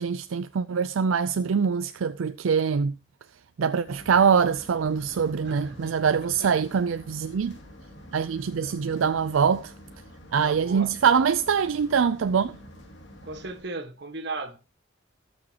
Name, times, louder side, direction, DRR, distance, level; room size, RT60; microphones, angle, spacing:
voice 1, 0.0-2.9 3.6-7.6 8.1-9.7 10.3-12.6, right 6 dB, 80° right, 0.4 m, -24 dB
sound 1, 3.8-13.6, equal, 60° left, 2.2 m, -48 dB
voice 2, 5.4-5.9 6.4-6.5 8.6-9.0 10.6-10.9 13.2-14.6, right 3 dB, 55° right, 1.4 m, -37 dB
18.0 x 6.3 x 2.9 m
head